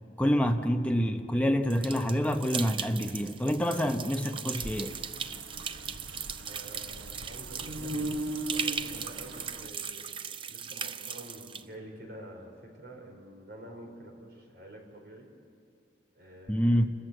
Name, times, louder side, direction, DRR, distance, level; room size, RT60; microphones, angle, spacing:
voice 1, 0.2-4.9 16.5-16.9, equal, 5° left, 5 dB, 0.8 m, -27 dB
sound 1, 1.7-11.6, right 7 dB, 25° right, 0.5 m, -38 dB
sound 2, 4.5-9.7, right 1 dB, 85° right, 1.3 m, -39 dB
voice 2, 6.5-10.0 10.5-15.3 16.1-16.9, right 1 dB, 55° right, 1 dB, 4.2 m, -48 dB
28.0 x 14.0 x 8.0 m, 2.5 s
head